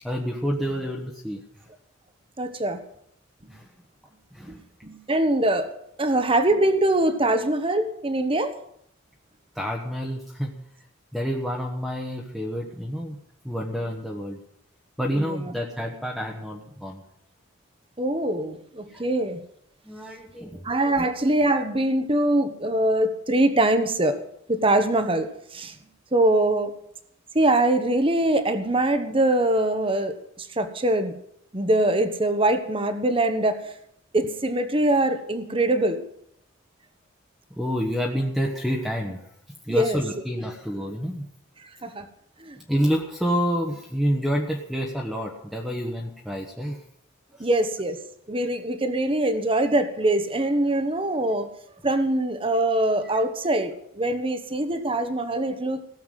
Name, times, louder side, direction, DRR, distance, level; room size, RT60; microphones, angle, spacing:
voice 1, 0.0-1.4 3.5-3.7 4.3-4.6 9.5-10.5 11.1-13.2 13.4-14.4 15.0-17.0 18.9-19.0 19.8-20.6 21.0-21.1 37.5-39.2 39.7-41.3 42.7-46.8 47.4-47.5, equal, ahead, -1 dB, 1.3 m, -28 dB
voice 2, 2.4-2.8 4.5-4.6 4.8-5.7 6.0-8.6 15.1-15.5 18.0-19.4 20.6-24.2 24.5-25.7 26.1-26.7 27.3-31.1 31.5-33.6 34.1-36.0 39.7-40.0 41.8-42.0 42.4-42.6 47.4-48.0 48.3-51.5 51.8-55.8, right 1 dB, 25° right, 8 dB, 1.2 m, -23 dB
17.0 x 7.2 x 9.1 m, 0.71 s
head